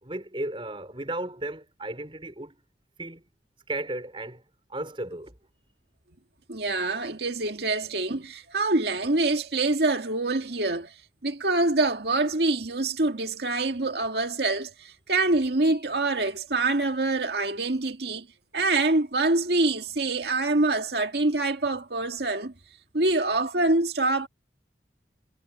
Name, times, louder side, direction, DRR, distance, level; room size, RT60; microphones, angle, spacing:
voice 1, 0.0-2.6 3.0-3.2 3.7-4.4 4.7-5.4, right 1 dB, 30° right, 4.8 m, -34 dB
voice 2, 6.5-10.9 11.2-18.3 18.5-22.5 22.9-24.3, right 2 dB, 65° right, 1.9 m, -25 dB
head